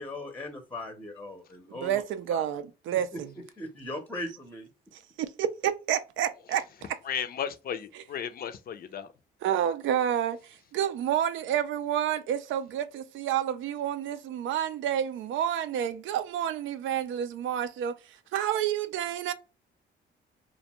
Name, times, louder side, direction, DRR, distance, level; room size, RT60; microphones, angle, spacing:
voice 1, 0.0-2.0 2.3-2.4 3.1-3.2 3.6-4.7, left 1 dB, 10° left, 0.6 m, -38 dB
voice 2, 1.7-3.3 4.9-7.0 7.9-8.1 9.4-19.3, right 10 dB, 75° right, 0.4 m, -30 dB
voice 3, 7.1-9.1, left 8 dB, 50° left, 0.4 m, -34 dB
2.5 x 2.2 x 2.8 m
cardioid pair, 90°, 20 cm